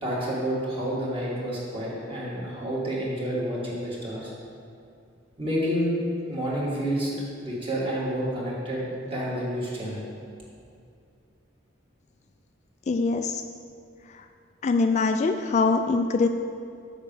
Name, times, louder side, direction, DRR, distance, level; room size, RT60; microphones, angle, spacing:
voice 1, 0.0-4.3 5.4-5.9 6.3-10.1, equal, 30° right, -6 dB, 2.2 m, -29 dB
voice 2, 12.9-13.4 14.6-16.3, left 4 dB, 35° left, 6 dB, 0.3 m, -23 dB
7.2 x 5.2 x 7.1 m, 2.4 s
head